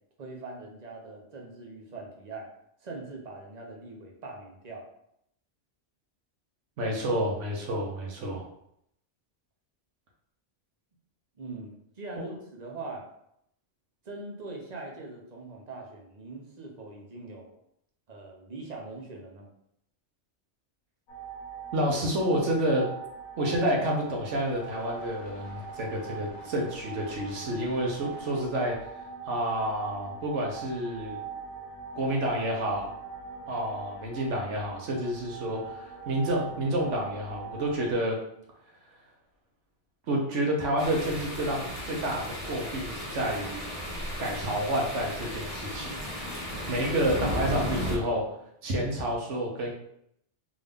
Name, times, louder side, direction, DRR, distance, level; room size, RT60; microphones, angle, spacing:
voice 1, 0.2-2.5 2.8-4.9 11.4-13.0 14.0-17.5 18.1-19.5, right 3 dB, 40° right, 0 dB, 0.8 m, -42 dB
voice 2, 6.8-8.5 12.1-12.2 21.7-22.9 23.4-28.8 29.2-31.2 31.9-32.9 33.5-38.2 40.1-43.6 44.2-45.9 46.7-48.2 48.6-49.7, right 1 dB, 85° right, -1 dB, 1.2 m, -29 dB
sound 1, 21.1-37.9, right 5 dB, 80° left, 1.2 m, -42 dB
sound 2, 40.8-48.0, equal, 35° left, 1.1 m, -35 dB
3.7 x 2.7 x 3.5 m, 0.74 s
omnidirectional pair, 1.2 m